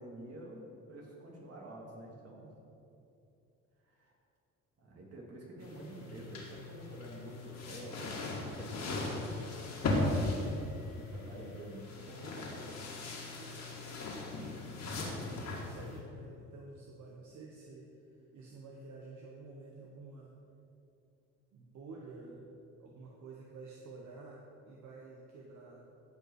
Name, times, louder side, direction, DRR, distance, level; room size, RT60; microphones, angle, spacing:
voice 1, 0.0-2.5 3.8-4.1 4.8-9.7 10.7-12.6, right 1 dB, 55° right, -2 dB, 2.7 m, -48 dB
sound 1, 5.6-16.0, left 2 dB, 60° left, 2.3 m, -38 dB
voice 2, 13.3-17.9 18.3-20.3 21.5-22.5 22.8-25.8, right 3 dB, 70° right, -2 dB, 1.2 m, -51 dB
14.5 x 5.4 x 4.8 m, 2.7 s
cardioid pair, 90°, 30 cm